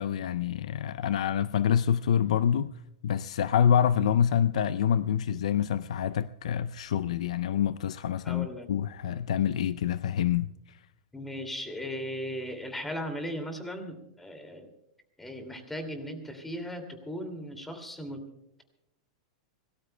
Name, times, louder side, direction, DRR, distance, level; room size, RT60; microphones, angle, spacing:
voice 1, 0.0-2.8 3.0-10.8, left 9 dB, 80° left, 0.5 m, -26 dB
voice 2, 8.2-8.7 11.1-14.7 15.2-18.2, equal, 5° left, 2.4 m, -37 dB
25.5 x 18.5 x 2.2 m
supercardioid pair, 160°, 3 cm